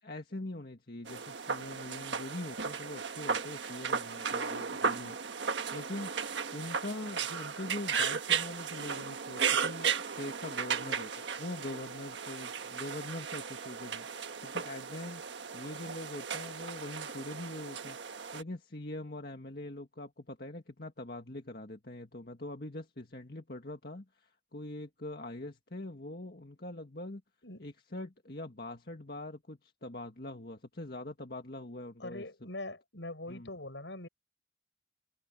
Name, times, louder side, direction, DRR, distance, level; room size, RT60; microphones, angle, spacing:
voice 1, 0.0-5.2 5.4-6.1 6.5-14.1 14.4-27.2 27.6-32.2 33.3-33.5, left 1 dB, 55° left, 1.9 m, -43 dB
sound 1, 1.1-18.4, right 6 dB, 80° right, 1.4 m, -35 dB
voice 2, 32.0-34.1, left 2 dB, 80° left, 7.5 m, -42 dB
head